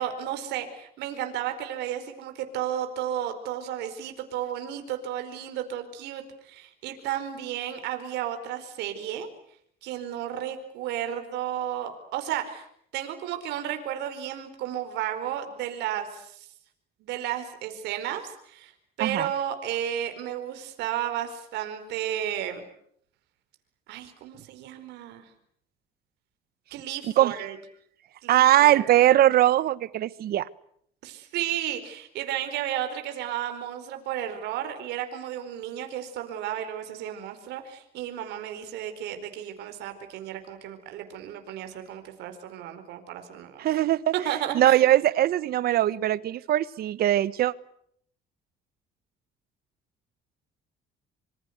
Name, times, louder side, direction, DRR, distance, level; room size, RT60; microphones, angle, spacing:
voice 1, 0.0-9.3 9.8-12.7 12.9-16.5 17.0-18.7 19.0-22.7 23.9-25.3 26.7-27.6 28.2-28.9 31.0-43.7 44.2-44.9, right 10 dB, 85° right, 7 dB, 4.6 m, -33 dB
voice 2, 28.3-30.5 43.6-44.0 44.5-47.5, right 13 dB, 65° right, 18 dB, 1.2 m, -21 dB
26.0 x 26.0 x 8.1 m, 0.68 s
cardioid pair, 110°, 17 cm